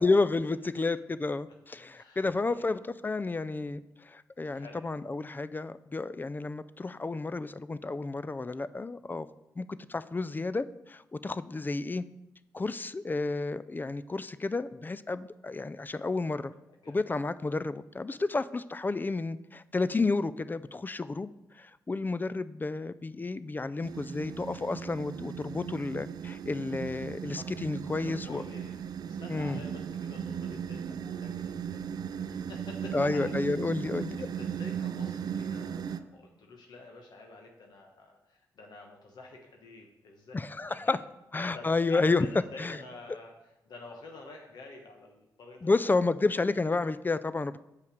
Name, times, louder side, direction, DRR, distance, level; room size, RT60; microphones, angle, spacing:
voice 1, 0.0-9.3 9.6-12.0 12.5-16.5 16.9-28.4 29.3-29.6 32.9-34.3 40.3-41.0 41.3-42.3 42.6-42.8 45.6-47.6, left 3 dB, 25° left, 14 dB, 0.3 m, -31 dB
voice 2, 1.9-2.6 4.5-4.8 16.8-17.0 27.3-27.5 28.0-28.8 29.0-33.5 34.2-41.0 41.3-43.3 43.6-45.7, left 3 dB, 70° left, 1 dB, 1.0 m, -49 dB
sound 1, 23.8-36.0, right 8 dB, 65° right, 0.4 m, -37 dB
6.6 x 5.4 x 5.1 m, 0.92 s
supercardioid pair, 50°, 7 cm